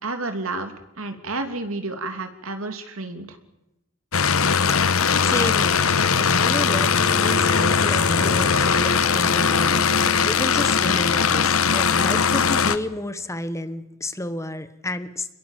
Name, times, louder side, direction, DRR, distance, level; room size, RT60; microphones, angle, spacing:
voice 1, 0.0-3.4, right 2 dB, 75° right, 7 dB, 3.1 m, -31 dB
sound 1, 4.1-12.8, left 6 dB, 85° left, 1.3 m, -20 dB
voice 2, 4.6-5.9 6.2-15.3, left 1 dB, 15° left, 12 dB, 1.3 m, -31 dB
sound 2, 7.1-11.8, right 3 dB, 55° right, 1.0 m, -37 dB
29.0 x 21.0 x 7.5 m, 0.92 s
head